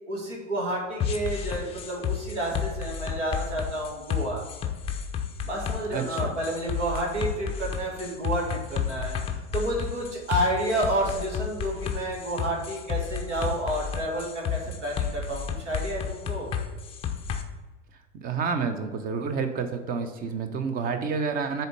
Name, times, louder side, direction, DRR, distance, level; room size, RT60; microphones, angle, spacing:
voice 1, 0.1-4.4 5.4-16.5, right 1 dB, 70° right, -1 dB, 2.0 m, -30 dB
sound 1, 1.0-17.4, left 8 dB, 15° left, 0.5 m, -31 dB
voice 2, 5.9-6.3 18.2-21.7, right 5 dB, 25° right, 8 dB, 0.7 m, -29 dB
6.6 x 4.3 x 6.5 m, 1.3 s
figure-of-eight pair, 90°, 37 cm